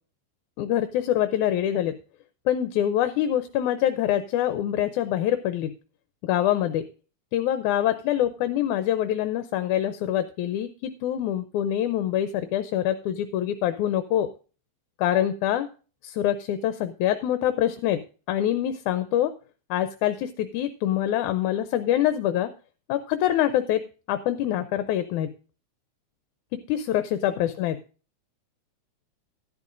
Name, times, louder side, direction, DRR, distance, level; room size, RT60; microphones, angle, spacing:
voice 1, 0.6-2.0 2.5-5.7 6.2-6.9 7.3-14.3 15.0-15.7 16.0-19.3 19.7-22.5 22.9-23.8 24.1-25.3 26.7-27.8, left 11 dB, 80° left, 10 dB, 2.1 m, -25 dB
13.5 x 11.5 x 2.6 m, 0.36 s
omnidirectional pair, 3.5 m